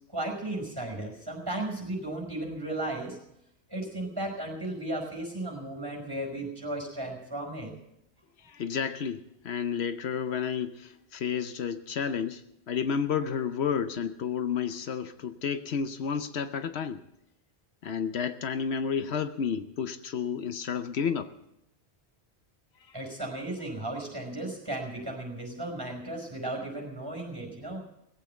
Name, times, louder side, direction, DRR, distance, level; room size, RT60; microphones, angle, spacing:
voice 1, 0.1-3.2 3.7-7.7 22.9-27.8, right 1 dB, 20° right, 1 dB, 5.3 m, -35 dB
voice 2, 8.4-17.0 17.8-21.3, left 7 dB, 75° left, 10 dB, 1.0 m, -31 dB
18.5 x 8.5 x 8.0 m, 0.80 s
omnidirectional pair, 1.1 m